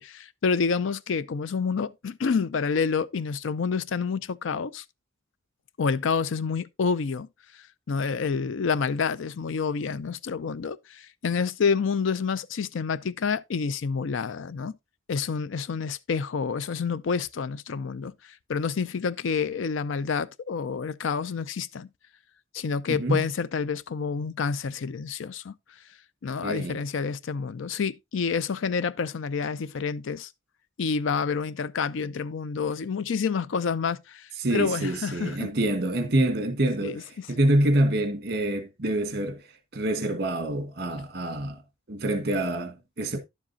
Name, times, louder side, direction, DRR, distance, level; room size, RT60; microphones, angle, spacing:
voice 1, 0.0-4.8 5.8-7.3 7.9-14.8 15.1-18.1 18.5-21.9 22.5-25.5 26.2-30.3 30.8-35.5 36.8-37.3, left 5 dB, 85° left, 0.5 m, -28 dB
voice 2, 22.9-23.2 26.4-26.8 34.4-39.4 39.7-41.6 41.9-43.2, right 1 dB, 55° right, 1.5 m, -26 dB
10.5 x 7.4 x 2.7 m
head